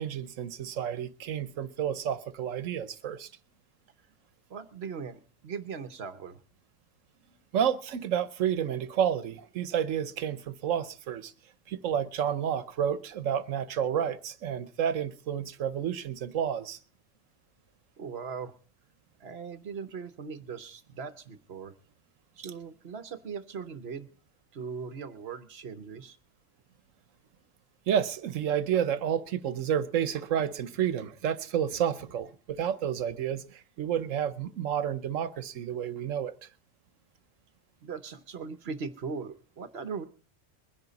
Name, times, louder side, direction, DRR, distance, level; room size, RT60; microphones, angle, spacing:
voice 1, 0.0-3.3 7.5-11.3 11.7-16.8 27.9-36.3, right 9 dB, 85° right, 1.2 m, -30 dB
voice 2, 4.5-6.4 18.0-18.5 19.2-21.7 22.4-24.1 24.5-26.2 37.8-40.1, right 5 dB, 55° right, 1.1 m, -39 dB
21.5 x 10.5 x 4.0 m
omnidirectional pair, 1.3 m